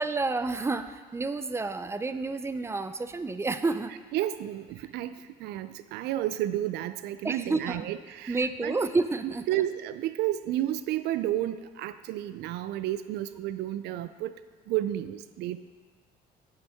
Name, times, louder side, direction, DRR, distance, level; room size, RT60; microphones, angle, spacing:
voice 1, 0.0-3.9 7.2-7.9 8.3-9.5, right 3 dB, 15° right, 11 dB, 0.4 m, -29 dB
voice 2, 4.1-8.8 9.2-14.3 14.7-15.6, right 13 dB, 80° right, 13 dB, 0.4 m, -31 dB
9.1 x 8.5 x 3.5 m, 1.5 s
cardioid pair, 110°, 17 cm